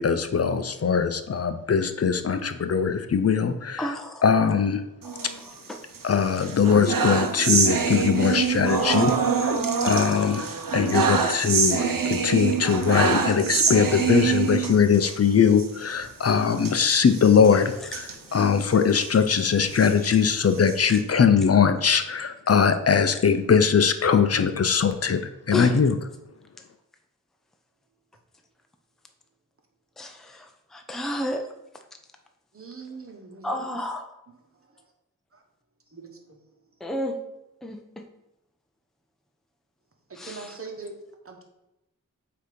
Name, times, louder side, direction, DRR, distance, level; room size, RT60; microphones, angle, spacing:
voice 1, 0.0-3.8 4.2-4.8 6.0-9.1 9.8-17.7 18.3-25.9, left 6 dB, 50° left, 9 dB, 0.6 m, -21 dB
voice 2, 3.8-4.2 5.0-5.8 6.5-6.6 8.9-9.0 9.5-9.9 10.2-10.3 16.3-16.5 17.8-17.9 20.0-20.2 20.9-21.0 21.4-21.5 25.5-25.7 30.0-31.5 33.4-34.1 36.8-37.2 37.6-38.1 40.1-40.6, left 1 dB, ahead, 5 dB, 0.6 m, -33 dB
sound 1, 5.0-6.0 6.4-15.2 15.5-15.7 15.9-16.1 16.6-19.1 19.6-21.0, right 6 dB, 80° right, 0.8 m, -25 dB
voice 3, 32.5-33.8 35.3-35.4 35.9-36.4 40.1-41.0 41.2-41.4, right 4 dB, 40° right, 3 dB, 1.2 m, -41 dB
8.0 x 2.9 x 5.1 m, 0.93 s
wide cardioid pair, 95°, 33 cm